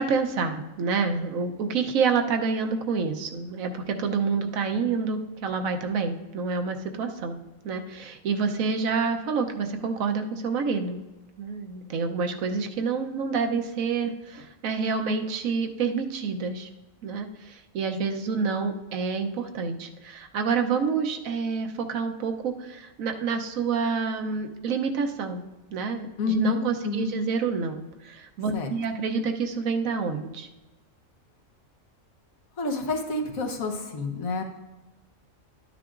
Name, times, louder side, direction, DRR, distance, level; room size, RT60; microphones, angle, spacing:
voice 1, 0.0-7.4 7.6-11.0 11.4-16.7 17.0-25.4 25.7-30.5, right 5 dB, 80° right, 5 dB, 1.2 m, -28 dB
voice 2, 26.2-26.6 26.8-27.1 28.5-28.7 32.6-34.4, left 4 dB, 90° left, 3 dB, 1.5 m, -28 dB
12.5 x 9.5 x 2.5 m, 1.1 s
omnidirectional pair, 1.4 m